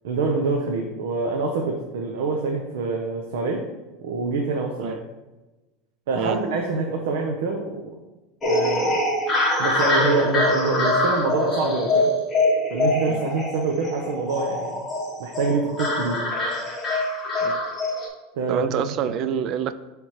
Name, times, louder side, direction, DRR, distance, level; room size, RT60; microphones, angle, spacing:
voice 1, 0.0-3.6 4.0-5.0 6.1-7.7 8.5-9.0 9.6-12.1 12.7-14.7 15.2-16.2 18.3-18.8 19.1-19.4, right 3 dB, 75° right, 1 dB, 0.8 m, -26 dB
sound 1, 8.4-18.1, left 1 dB, 10° left, 1.2 m, -24 dB
voice 2, 18.5-19.7, right 9 dB, 30° right, 12 dB, 0.3 m, -26 dB
9.9 x 3.5 x 3.1 m, 1.1 s
supercardioid pair, 180°, 0 cm